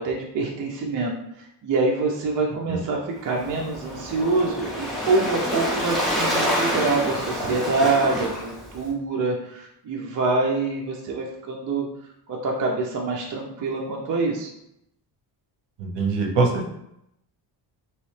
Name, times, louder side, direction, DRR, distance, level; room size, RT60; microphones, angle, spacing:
voice 1, 0.0-11.9 12.3-14.5, right 3 dB, 45° right, -1 dB, 0.5 m, -25 dB
Waves surf, 3.2-8.9, equal, ahead, 0.7 m, -27 dB
voice 2, 15.8-16.7, right 4 dB, 65° right, 1 dB, 0.8 m, -23 dB
3.0 x 3.0 x 3.1 m, 0.80 s
wide cardioid pair, 170°, 45 cm